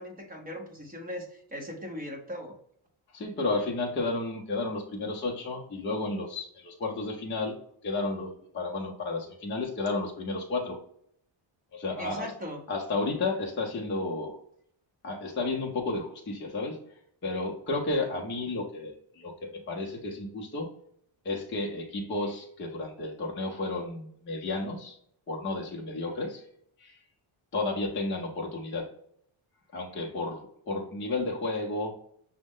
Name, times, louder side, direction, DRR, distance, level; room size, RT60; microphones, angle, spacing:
voice 1, 0.0-2.5 12.0-12.6, equal, 20° right, 1 dB, 0.7 m, -39 dB
voice 2, 3.1-7.6 7.8-10.8 11.7-12.3 12.7-14.4 15.0-20.7 21.2-25.0 25.3-26.4 26.8-27.0 27.5-28.9 29.7-31.9, left 2 dB, 25° left, 0 dB, 0.5 m, -32 dB
6.1 x 2.1 x 3.6 m, 0.68 s
wide cardioid pair, 175°, 49 cm